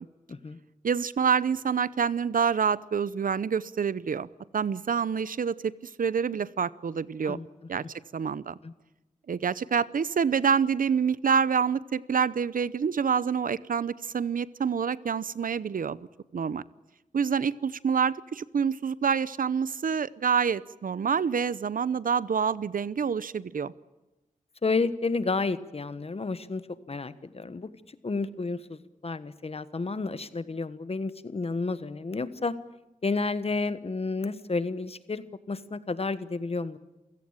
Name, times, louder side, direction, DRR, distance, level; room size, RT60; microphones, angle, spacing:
voice 1, 0.8-4.3 4.5-5.7 6.0-7.4 7.7-7.8 8.1-8.6 9.3-16.1 16.3-16.6 17.1-23.7, right 6 dB, 85° right, 19 dB, 0.7 m, -27 dB
voice 2, 24.6-26.6 26.9-27.7 28.0-32.5 33.0-36.8, left 3 dB, 45° left, 14 dB, 1.3 m, -31 dB
28.5 x 16.5 x 8.9 m, 1.0 s
wide cardioid pair, 105°, 14 cm